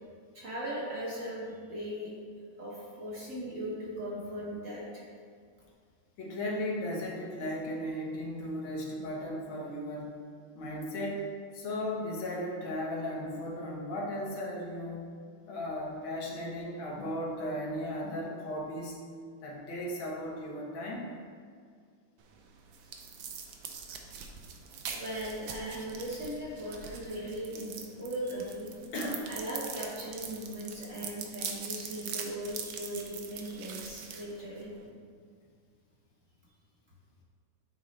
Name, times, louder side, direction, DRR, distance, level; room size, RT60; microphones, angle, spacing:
voice 1, 0.3-2.1 2.5-5.0 24.9-28.7 29.3-34.7, equal, 50° right, -5 dB, 1.0 m, -38 dB
voice 2, 6.2-10.2 10.6-11.3 11.5-15.1 15.5-19.0 19.4-21.1 28.9-29.3, left 1 dB, 75° left, -2 dB, 1.8 m, -36 dB
sound 1, 22.2-34.9, right 6 dB, 75° right, 0.9 m, -43 dB
9.0 x 3.6 x 3.2 m, 2.1 s
omnidirectional pair, 2.2 m